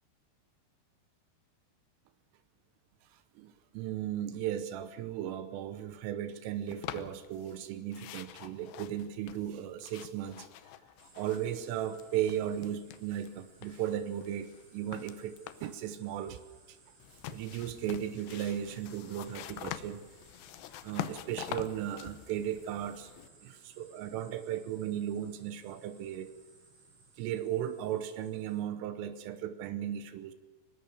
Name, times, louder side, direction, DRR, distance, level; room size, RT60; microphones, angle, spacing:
voice 1, 3.4-10.5 11.2-16.4 16.7-16.8 17.3-20.0 20.8-23.1 23.4-26.3 27.2-30.3, right 10 dB, 80° right, 10 dB, 3.5 m, -36 dB
sound 1, 6.7-7.6 7.9-11.7 11.9-13.3 13.6-15.8 17.0-23.3, left 13 dB, 75° left, 2.6 m, -45 dB
sound 2, 11.0-28.6, right 3 dB, 60° right, 7.7 m, -62 dB
23.0 x 19.5 x 6.5 m, 1.4 s
omnidirectional pair, 5.8 m